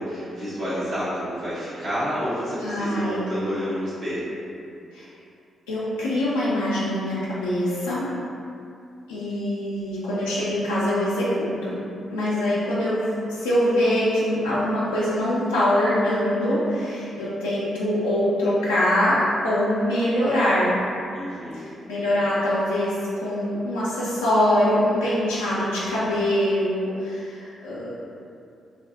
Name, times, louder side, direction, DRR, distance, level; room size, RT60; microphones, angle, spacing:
voice 1, 0.0-4.3 21.1-21.8, equal, 70° right, -11 dB, 0.7 m, -29 dB
voice 2, 2.6-3.3 4.9-5.1 5.7-8.0 9.1-11.8 12.1-20.8 21.5-27.9, left 1 dB, 90° left, -9 dB, 0.3 m, -23 dB
2.6 x 2.3 x 2.3 m, 2.5 s
hypercardioid pair, 40°, 0 cm